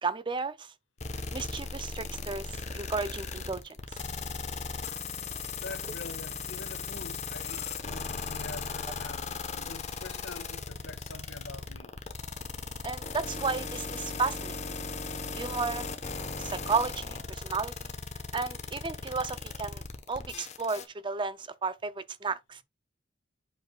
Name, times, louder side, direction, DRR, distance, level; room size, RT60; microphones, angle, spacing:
voice 1, 0.0-0.7 1.3-3.7 12.8-14.6 15.3-15.9 16.2-17.7 18.3-19.8 20.1-22.6, right 4 dB, 25° right, 0.4 m, -33 dB
sound 1, 1.0-20.9, left 4 dB, 35° left, 1.0 m, -37 dB
voice 2, 5.6-11.9, left 3 dB, 80° left, 1.6 m, -45 dB
7.9 x 6.3 x 2.3 m
head